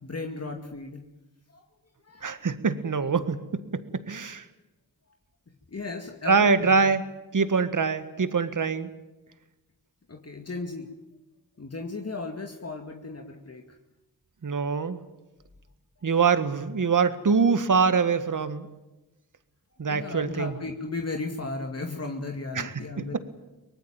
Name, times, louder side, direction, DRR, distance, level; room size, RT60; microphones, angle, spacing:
voice 1, 0.0-1.0 1.5-1.6 2.0-2.3 5.7-7.0 10.1-10.9 11.6-13.6 19.9-23.2, left 3 dB, 40° left, 3 dB, 2.3 m, -35 dB
voice 2, 2.2-3.4 4.1-4.4 6.3-7.0 7.3-8.9 14.4-15.0 16.0-18.7 19.8-20.5 22.6-22.7 23.0-23.2, right 5 dB, 55° right, 12 dB, 1.8 m, -24 dB
24.0 x 19.0 x 9.0 m, 1.0 s
cardioid pair, 50°, 36 cm